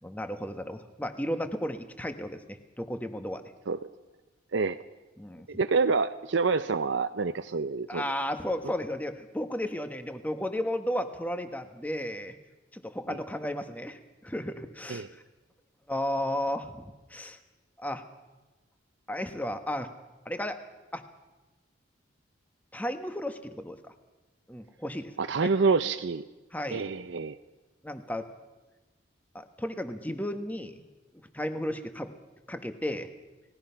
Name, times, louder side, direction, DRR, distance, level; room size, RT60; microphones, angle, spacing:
voice 1, 0.0-3.4 5.2-5.5 7.9-12.4 12.7-15.2 15.9-17.4 17.8-18.0 19.1-19.9 20.2-20.6 20.9-21.0 22.7-23.9 24.5-25.1 25.4-25.5 26.5-26.9 27.8-28.3 29.3-30.9 31.3-32.1 32.5-33.1, left 1 dB, 10° left, 8 dB, 1.2 m, -34 dB
voice 2, 5.5-8.0 13.1-13.2 14.9-15.1 25.2-26.2 26.7-27.4, right 4 dB, 70° right, 9 dB, 0.6 m, -27 dB
30.0 x 18.0 x 5.7 m, 1.1 s
head